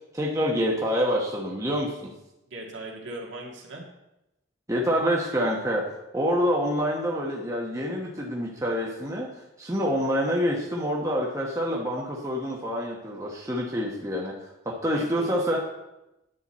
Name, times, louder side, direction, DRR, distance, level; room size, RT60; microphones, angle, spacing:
voice 1, 0.1-2.0 4.7-5.8 6.1-9.3 9.6-14.3 14.6-15.6, equal, 15° right, -2 dB, 1.1 m, -26 dB
voice 2, 2.5-3.8 13.5-14.1 14.9-15.3, right 1 dB, 65° right, -1 dB, 1.9 m, -40 dB
10.0 x 7.9 x 4.2 m, 0.92 s
head